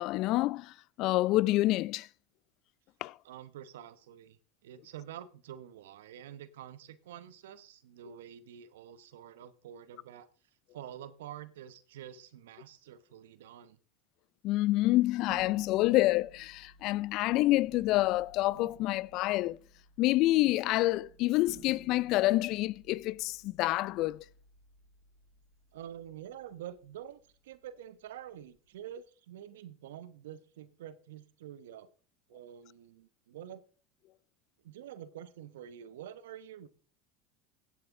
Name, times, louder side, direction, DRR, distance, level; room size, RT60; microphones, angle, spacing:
voice 1, 0.0-2.1 3.0-3.1 14.4-19.6 20.0-24.2, left 18 dB, 60° left, 0.4 m, -28 dB
voice 2, 3.2-10.3 10.7-13.8 25.7-31.9 32.3-33.6 34.6-36.7, right 10 dB, 80° right, 1.0 m, -47 dB
sound 1, 15.3-28.9, right 3 dB, 65° right, 3.7 m, -58 dB
16.5 x 7.9 x 3.7 m
hypercardioid pair, 90°, 0 cm